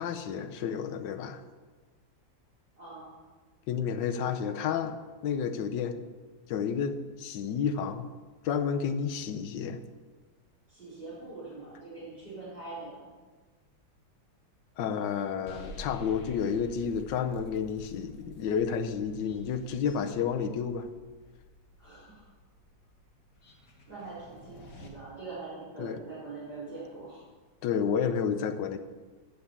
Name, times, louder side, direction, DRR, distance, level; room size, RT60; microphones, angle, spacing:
voice 1, 0.0-1.4 3.7-6.0 6.5-8.1 8.4-9.8 14.8-20.9 25.8-26.0 27.6-28.8, left 7 dB, 85° left, 8 dB, 1.4 m, -31 dB
voice 2, 2.8-3.1 10.7-13.1 21.8-22.2 23.9-27.2, right 3 dB, 35° right, -11 dB, 4.4 m, -43 dB
sound 1, 15.5-24.9, left 1 dB, 55° left, 1.8 m, -50 dB
8.6 x 7.3 x 8.0 m, 1.4 s
omnidirectional pair, 1.9 m